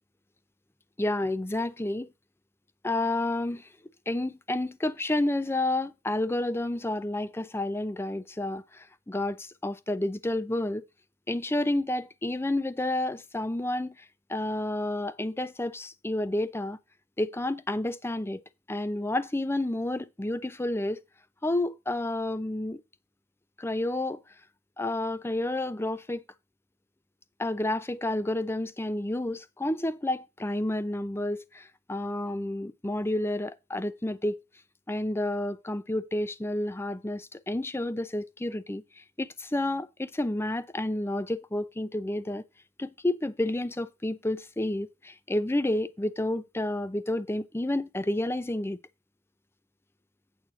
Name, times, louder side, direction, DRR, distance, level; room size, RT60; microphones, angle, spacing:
voice 1, 1.0-2.1 2.8-3.7 4.1-10.8 11.3-14.0 14.3-16.8 17.2-18.4 18.7-21.0 21.4-22.8 23.6-24.2 24.8-26.2 27.4-34.4 34.9-42.4 42.8-48.8, left 1 dB, 15° left, 0.5 m, -30 dB
8.8 x 4.4 x 6.0 m
head